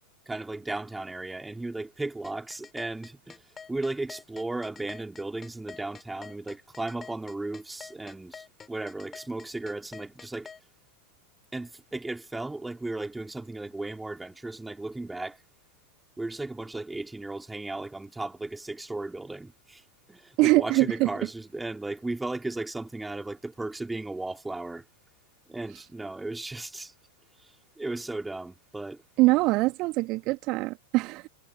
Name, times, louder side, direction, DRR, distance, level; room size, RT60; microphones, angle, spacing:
voice 1, 0.3-3.4 3.7-10.5 11.5-15.4 16.2-19.8 20.1-24.9 25.5-26.9 27.4-27.5 27.8-29.0, right 2 dB, 5° right, 4.3 m, -35 dB
sound 1, 2.2-10.6, left 6 dB, 20° left, 6.9 m, -46 dB
voice 2, 20.4-21.1 29.2-31.3, right 21 dB, 40° right, 1.9 m, -23 dB
figure-of-eight pair, 90°, 0 cm